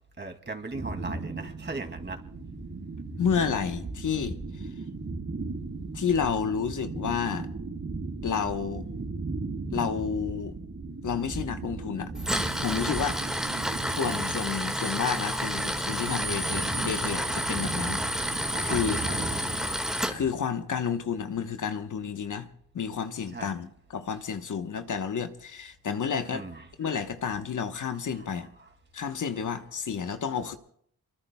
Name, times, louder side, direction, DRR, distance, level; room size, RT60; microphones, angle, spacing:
voice 1, 0.2-2.2 18.5-19.5 23.3-23.5 26.3-27.1 27.9-29.3 30.1-30.4, right 3 dB, 30° right, 2.6 m, -40 dB
sound 1, 0.7-20.4, right 3 dB, 55° right, 5.0 m, -37 dB
voice 2, 3.2-4.7 5.9-7.5 8.2-8.8 9.7-10.5 11.0-12.1 12.6-13.4 13.9-19.0 20.1-22.5 22.7-23.7 23.9-26.4 26.8-28.5 28.9-30.5, left 6 dB, 60° left, 1.2 m, -30 dB
Tools, 12.1-20.1, equal, ahead, 1.9 m, -30 dB
26.5 x 23.5 x 2.3 m
cardioid pair, 60°, 34 cm